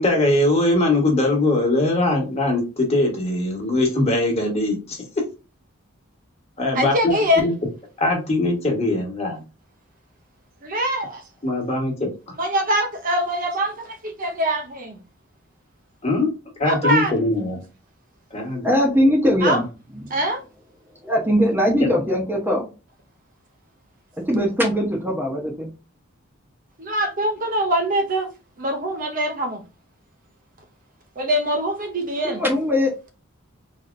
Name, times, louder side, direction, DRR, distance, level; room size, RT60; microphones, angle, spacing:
voice 1, 0.0-5.2 6.6-7.5 8.0-9.4 11.4-12.1 16.0-16.3 16.6-17.6 18.3-18.7 21.8-21.9, left 2 dB, 30° left, 1.3 m, -21 dB
voice 2, 6.7-7.5 10.6-11.2 12.4-15.0 16.6-17.1 19.4-19.6 20.1-20.4 26.8-28.3 28.6-29.6 31.2-32.4, equal, 40° right, 0.7 m, -23 dB
voice 3, 18.6-19.6 20.0-20.2 21.0-22.7 24.3-25.7 32.2-33.1, equal, 10° right, 0.8 m, -20 dB
4.1 x 2.8 x 2.5 m
head